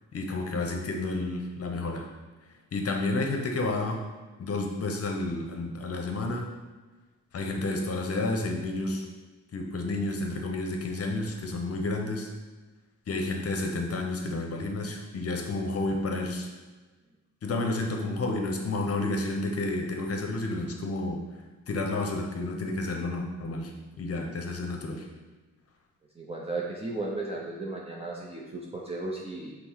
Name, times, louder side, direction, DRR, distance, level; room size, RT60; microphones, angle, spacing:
voice 1, 0.1-2.1 2.7-4.0 4.4-6.5 7.3-9.1 9.5-12.3 13.1-16.5 17.4-21.2 21.7-23.7 24.0-25.1, left 2 dB, 50° left, 2 dB, 0.7 m, -30 dB
voice 2, 26.2-29.6, right 2 dB, 20° right, -3 dB, 0.6 m, -35 dB
5.3 x 2.1 x 4.4 m, 1.3 s
cardioid pair, 100°, 30 cm